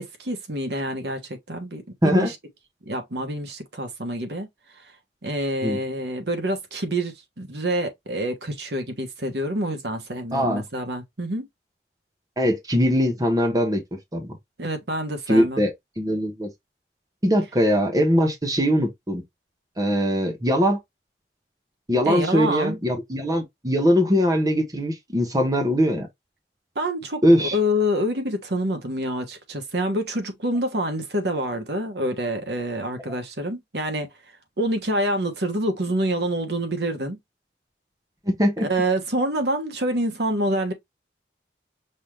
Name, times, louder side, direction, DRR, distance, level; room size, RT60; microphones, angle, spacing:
voice 1, 0.0-2.3 2.8-4.5 5.2-11.4 14.6-15.6 22.0-22.8 26.7-34.1 34.6-37.2 38.6-40.7, equal, 70° right, 1.3 m, -27 dB
voice 2, 10.3-10.6 12.4-13.8 14.1-14.4 15.3-15.7 16.0-16.5 17.2-19.2 19.8-20.8 21.9-26.1 27.2-27.6 38.3-38.7, equal, 20° right, 1.1 m, -21 dB
5.6 x 2.7 x 3.2 m
head